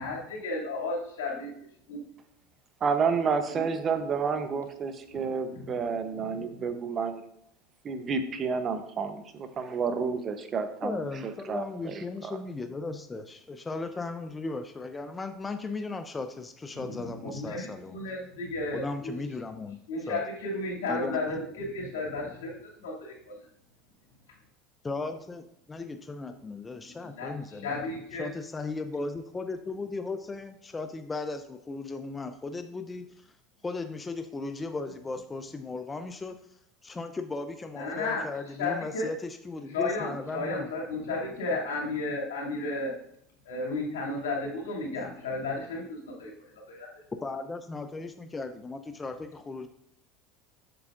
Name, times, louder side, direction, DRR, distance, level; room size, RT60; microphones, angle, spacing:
voice 1, 0.0-1.5 1.9-2.0 3.5-3.6 5.1-6.7 16.7-19.1 19.9-23.5 27.0-28.3 37.7-39.1 39.7-42.9 43.4-46.9, left 2 dB, 85° left, -3 dB, 2.5 m, -34 dB
voice 2, 2.8-7.2 7.8-12.4, right 5 dB, 35° right, 9 dB, 0.8 m, -30 dB
voice 3, 10.8-18.0 18.7-20.2 20.9-21.4 24.8-27.7 28.2-33.3 33.6-36.4 36.8-40.7 47.1-49.7, left 3 dB, 20° left, 8 dB, 0.5 m, -36 dB
7.8 x 7.1 x 2.5 m, 0.73 s
supercardioid pair, 105°, 0 cm